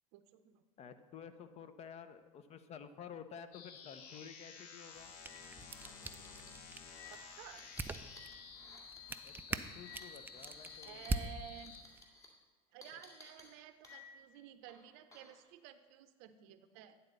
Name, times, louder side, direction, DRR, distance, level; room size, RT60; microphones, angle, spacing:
voice 1, 0.1-0.6 7.1-7.6 10.8-11.7 12.7-17.0, right 11 dB, 60° right, 11 dB, 0.6 m, -53 dB
voice 2, 0.8-5.1 9.2-11.3, left 7 dB, 35° left, 11 dB, 0.6 m, -52 dB
sound 1, 3.5-11.8, left 6 dB, 55° left, 1.0 m, -53 dB
sound 2, 4.0-4.2 4.5-4.6 5.1-11.2 11.5-12.2 12.8-14.3 14.7-15.4, left 4 dB, 15° left, 1.9 m, -58 dB
sound 3, 4.9-12.0, right 3 dB, 10° right, 0.4 m, -44 dB
9.7 x 4.0 x 6.6 m, 1.3 s
hypercardioid pair, 85°, 18 cm